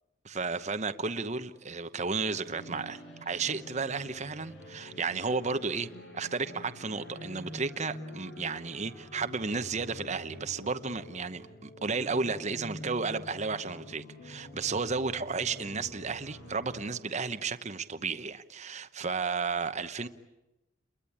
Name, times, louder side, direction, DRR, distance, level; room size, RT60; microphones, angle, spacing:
voice 1, 0.2-20.1, right 4 dB, 35° right, 0.9 m, -33 dB
sound 1, 2.4-16.9, left 1 dB, 75° left, 6.8 m, -47 dB
29.5 x 22.5 x 8.6 m
head